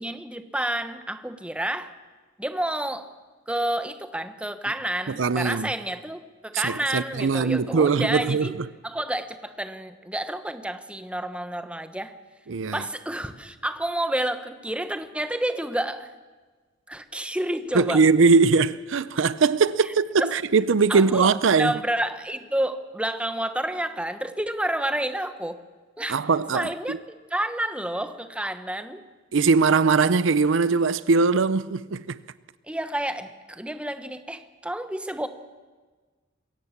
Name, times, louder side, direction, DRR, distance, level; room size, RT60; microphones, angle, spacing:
voice 1, 0.0-1.9 2.4-3.1 3.5-8.6 8.8-12.1 12.7-16.1 16.9-18.0 19.8-19.9 20.2-20.3 20.9-25.6 26.0-26.2 26.5-26.9 27.3-29.0 32.6-35.3, right 1 dB, 5° right, 1.1 m, -29 dB
voice 2, 5.2-5.7 6.5-8.5 12.5-12.8 17.7-21.7 26.1-27.0 29.3-32.2, right 4 dB, 70° right, 0.6 m, -21 dB
22.5 x 17.5 x 7.3 m
head